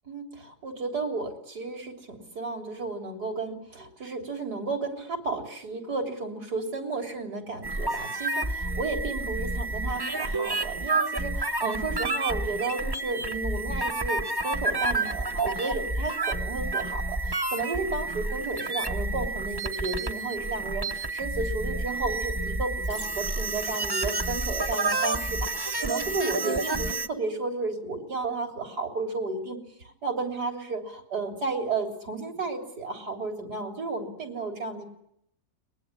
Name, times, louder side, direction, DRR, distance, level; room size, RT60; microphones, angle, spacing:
voice 1, 0.1-29.6 29.8-34.8, right 3 dB, 80° right, 4 dB, 4.1 m, -33 dB
sound 1, 7.6-27.1, right 2 dB, 20° right, 0.7 m, -30 dB
23.0 x 20.5 x 9.9 m, 0.73 s
omnidirectional pair, 1.7 m